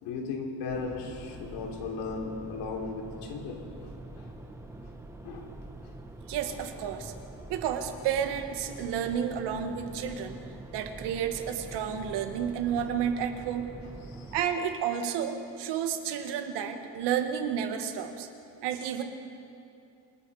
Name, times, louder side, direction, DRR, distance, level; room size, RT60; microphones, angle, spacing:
voice 1, 0.0-3.7 4.1-4.3 5.2-5.6 14.0-14.4, left 4 dB, 85° left, 1 dB, 3.5 m, -36 dB
sound 1, 0.7-14.4, right 1 dB, 5° right, 1.3 m, -45 dB
voice 2, 6.3-7.1 7.5-10.3 10.7-13.7 14.3-18.3 18.6-19.0, right 8 dB, 85° right, 6 dB, 1.9 m, -31 dB
27.5 x 21.5 x 5.0 m, 2.7 s
cardioid pair, 170°, 40 cm